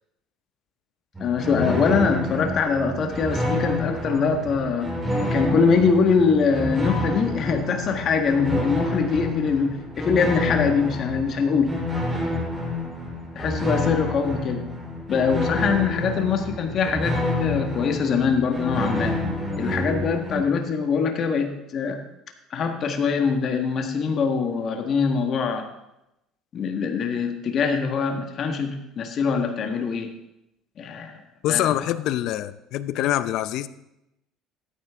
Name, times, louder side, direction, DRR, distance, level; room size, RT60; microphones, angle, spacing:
sound 1, 1.1-20.4, left 1 dB, 15° right, 2.9 m, -28 dB
voice 1, 1.2-5.0 5.3-11.7 13.3-14.7 15.1-19.2 19.6-22.0 22.5-25.7 26.5-30.1 30.8-31.2 31.5-31.9, left 5 dB, 45° left, 5 dB, 1.6 m, -23 dB
voice 2, 31.4-33.7, left 13 dB, 65° left, 15 dB, 0.6 m, -25 dB
13.5 x 9.1 x 3.6 m, 0.87 s
cardioid pair, 110°, 0 cm